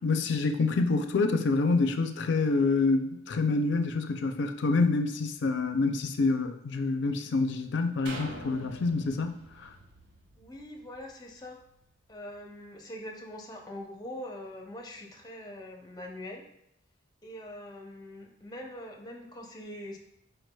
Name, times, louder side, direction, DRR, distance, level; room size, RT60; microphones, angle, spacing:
voice 1, 0.0-9.7, left 3 dB, 60° left, 7 dB, 0.4 m, -27 dB
sound 1, 8.1-11.8 12.4-12.5, right 1 dB, 70° right, 0.9 m, -45 dB
voice 2, 10.4-11.6 12.1-16.4 17.2-20.0, left 1 dB, 20° left, 1 dB, 0.6 m, -43 dB
4.6 x 4.6 x 2.2 m, 0.80 s
head